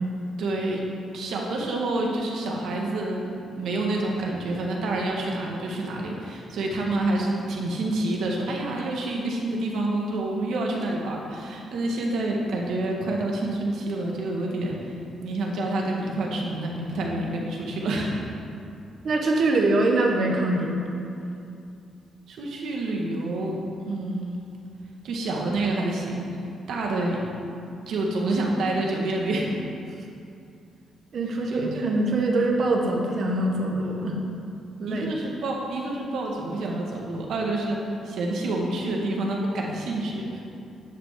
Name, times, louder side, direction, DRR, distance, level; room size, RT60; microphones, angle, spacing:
voice 1, 0.4-0.8 1.1-14.9 15.2-18.1 22.3-23.6 23.9-24.3 25.0-26.3 26.7-27.4 27.9-29.5 31.5-31.8 34.9-40.4, right 2 dB, 70° right, -1 dB, 1.7 m, -28 dB
voice 2, 19.0-20.9 31.1-34.2 34.8-35.1, right 2 dB, 45° right, 1 dB, 1.5 m, -23 dB
10.5 x 5.3 x 7.5 m, 2.5 s
cardioid pair, 155°, 0 cm